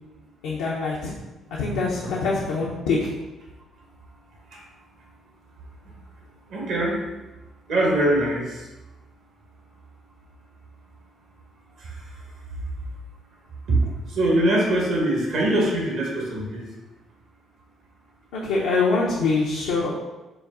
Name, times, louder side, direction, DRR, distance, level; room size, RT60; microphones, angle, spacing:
voice 1, 0.4-1.1 1.5-3.1 18.3-19.9, left 3 dB, 85° left, -5 dB, 0.6 m, -24 dB
voice 2, 6.5-7.0 7.7-8.6 11.8-12.0 13.7-13.8 14.1-16.7, right 1 dB, 75° right, -2 dB, 1.2 m, -22 dB
4.8 x 2.3 x 3.7 m, 1.1 s
supercardioid pair, 60°, 0 cm